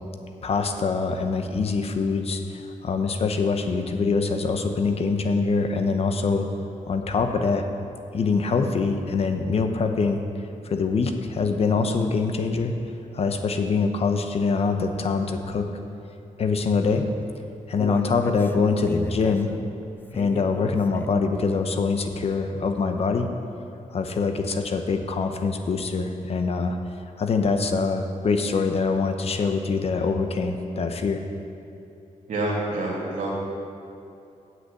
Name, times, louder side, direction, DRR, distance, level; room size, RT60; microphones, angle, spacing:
voice 1, 0.4-6.5 6.9-7.7 8.1-10.2 10.6-12.7 13.1-15.7 16.4-17.1 17.7-19.5 20.1-23.3 23.9-26.8 27.2-31.2, left 4 dB, 50° left, 6 dB, 0.8 m, -24 dB
Human voice, 17.2-21.3 21.7-21.8 22.3-22.4, left 2 dB, 15° left, 0.5 m, -38 dB
voice 2, 32.3-33.3, right 2 dB, 75° right, -4 dB, 2.5 m, -27 dB
7.8 x 6.5 x 8.2 m, 2.7 s
wide cardioid pair, 130°, 13 cm